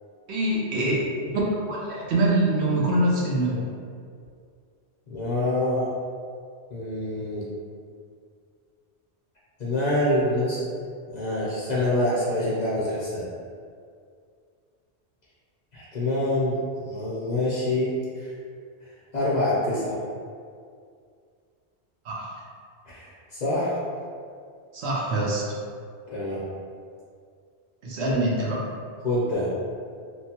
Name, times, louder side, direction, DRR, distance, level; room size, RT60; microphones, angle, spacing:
voice 1, 0.3-1.0 1.3-1.4 1.7-3.7 22.0-22.3 24.7-25.4 27.8-28.6, right 1 dB, 75° right, -5 dB, 0.9 m, -24 dB
voice 2, 5.1-5.9 6.7-7.5 9.6-10.7 11.1-13.2 15.7-18.3 19.1-20.0 22.9-23.7 26.1-26.4 29.0-29.5, left 1 dB, 45° left, -7 dB, 0.7 m, -26 dB
3.0 x 2.2 x 2.8 m, 2.2 s
omnidirectional pair, 1.1 m